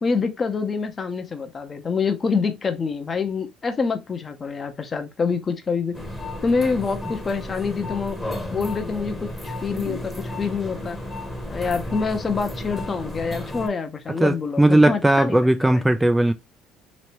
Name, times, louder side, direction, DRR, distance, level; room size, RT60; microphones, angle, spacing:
voice 1, 0.0-5.9 6.4-8.2 8.5-11.0 11.5-15.8, left 5 dB, 30° left, 0.7 m, -26 dB
sound 1, 5.9-13.7, left 1 dB, 10° left, 1.0 m, -33 dB
voice 2, 14.2-16.3, right 1 dB, 10° right, 0.3 m, -17 dB
3.2 x 3.1 x 2.8 m
cardioid pair, 100°, 0 cm